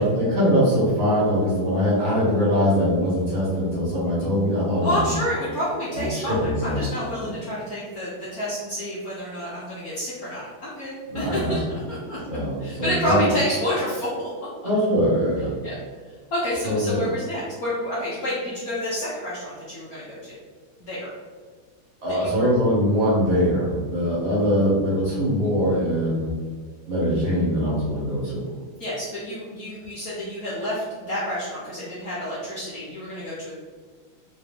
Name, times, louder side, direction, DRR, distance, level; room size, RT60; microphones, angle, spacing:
voice 1, 0.0-5.1 5.9-6.8 7.1-7.3 11.1-11.6 12.0-13.3 14.6-15.5 16.6-17.1 22.0-26.3 26.9-28.5, equal, 45° right, -8 dB, 1.4 m, -22 dB
voice 2, 4.8-12.2 12.6-14.1 15.6-15.7 16.3-20.2 20.8-21.1 22.2-22.5 28.8-33.5, equal, 60° left, -8 dB, 1.0 m, -29 dB
3.3 x 3.1 x 3.5 m, 1.5 s
omnidirectional pair, 2.4 m